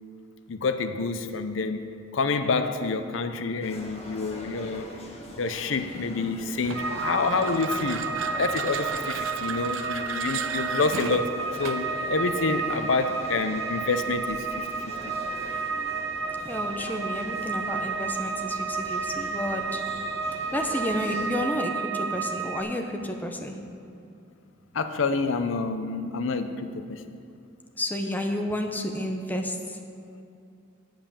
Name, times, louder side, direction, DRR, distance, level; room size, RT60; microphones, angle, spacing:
voice 1, 0.5-4.9 5.4-15.1 24.7-27.1, left 4 dB, 70° left, 9 dB, 0.6 m, -28 dB
sound 1, 3.6-21.3, equal, 30° left, 1.4 m, -42 dB
sound 2, 6.6-12.0, right 6 dB, 85° right, 0.6 m, -37 dB
sound 3, 6.7-22.6, right 5 dB, 70° right, 1.0 m, -31 dB
voice 2, 16.4-19.8 20.5-23.5 27.8-29.8, left 1 dB, 10° left, 3 dB, 0.8 m, -31 dB
8.9 x 7.7 x 7.2 m, 2.5 s
head